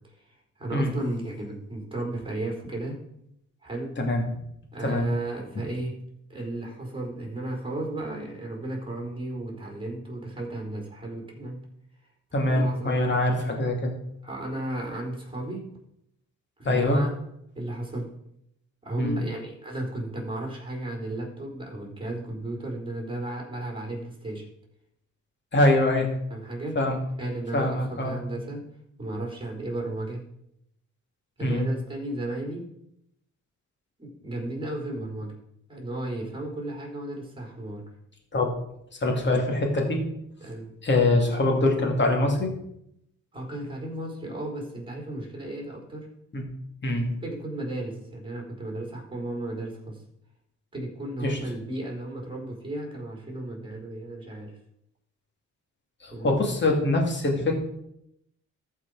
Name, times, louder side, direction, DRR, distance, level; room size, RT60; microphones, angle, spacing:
voice 1, 0.6-3.0 3.6-4.0 4.7-6.0 6.3-11.7 12.5-13.0 14.2-15.7 16.6-17.1 17.5-18.1 18.8-24.4 26.3-26.8 27.2-28.6 29.0-30.2 31.4-32.7 34.0-35.3 35.7-37.8 39.2-39.4 40.4-40.8 43.3-46.1 47.0-50.0 50.7-54.6 56.1-56.4, right 1 dB, 15° right, -1 dB, 3.9 m, -34 dB
voice 2, 12.3-13.9 16.7-17.0 19.0-19.2 25.5-26.1 26.8-27.0 27.5-28.1 31.4-31.7 38.3-38.5 39.0-40.0 40.8-42.5 46.3-46.5 46.8-47.1 51.2-51.4 56.0-57.5, left 2 dB, 35° left, 2 dB, 2.4 m, -23 dB
14.0 x 4.9 x 4.8 m, 0.77 s
cardioid pair, 90°, 30 cm